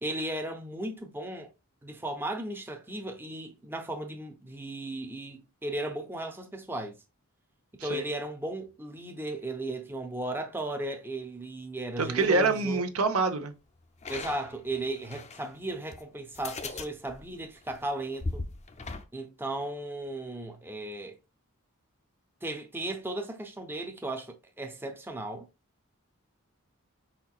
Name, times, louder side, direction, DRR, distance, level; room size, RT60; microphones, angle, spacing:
voice 1, 0.0-1.5 1.8-7.0 7.7-12.8 14.1-18.4 19.1-21.2 22.4-25.5, right 1 dB, 10° right, 0.6 m, -36 dB
voice 2, 12.0-13.5, right 3 dB, 70° right, 0.8 m, -26 dB
sound 1, 12.2-12.5 14.0-15.5 15.9-16.0 16.3-19.0, left 3 dB, 30° left, 0.6 m, -39 dB
4.8 x 4.3 x 2.4 m
head